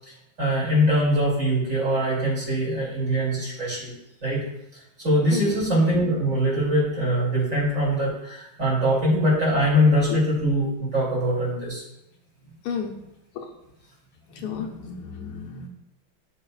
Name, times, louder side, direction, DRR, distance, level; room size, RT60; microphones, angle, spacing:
voice 1, 0.4-3.9 4.2-4.4 5.0-11.8, equal, 35° right, -7 dB, 3.1 m, -22 dB
voice 2, 5.3-5.6 10.1-10.2 12.4-12.9 13.4-13.5 14.3-15.7, left 6 dB, 80° left, 1 dB, 1.7 m, -32 dB
11.5 x 4.1 x 2.4 m, 0.87 s
omnidirectional pair, 2.4 m